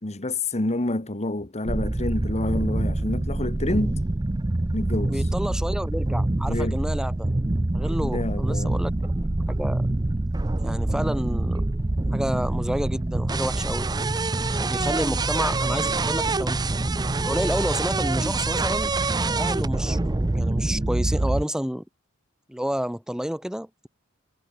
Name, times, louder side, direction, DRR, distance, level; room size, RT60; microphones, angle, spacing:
voice 1, 0.0-4.0 4.7-5.2 6.5-6.8 8.0-8.8, left 2 dB, 30° left, 1.6 m, -28 dB
sound 1, 1.7-21.4, right 2 dB, 20° right, 0.6 m, -25 dB
voice 2, 5.1-7.3 7.7-9.9 10.6-11.6 12.1-13.9 14.6-16.7 17.2-18.9 19.2-21.8 22.5-23.9, equal, 5° right, 1.3 m, -30 dB
head